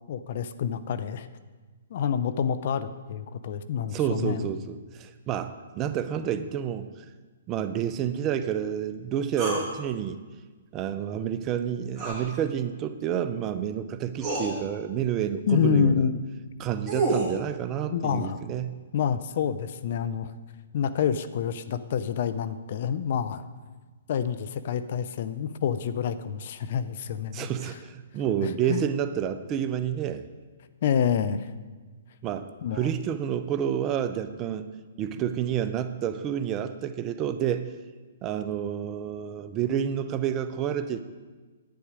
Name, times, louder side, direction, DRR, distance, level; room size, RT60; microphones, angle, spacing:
voice 1, 0.1-1.3 1.9-4.5 15.5-16.2 17.9-18.4 18.9-20.3 20.7-23.4 24.1-27.5 28.4-28.8 30.8-31.5 32.6-32.9, left 7 dB, 55° left, 13 dB, 0.6 m, -27 dB
voice 2, 3.9-6.9 7.5-10.2 10.7-16.1 16.6-18.8 27.3-30.3 32.2-32.5 32.7-34.7 35.0-37.8 38.2-41.0, right 9 dB, 25° right, 10 dB, 0.6 m, -29 dB
sound 1, 9.4-9.7 12.0-12.2 13.6-13.7 14.2-14.5 16.5-17.3, right 2 dB, 10° right, 2.6 m, -28 dB
10.5 x 9.3 x 5.0 m, 1.3 s
hypercardioid pair, 140°, 0 cm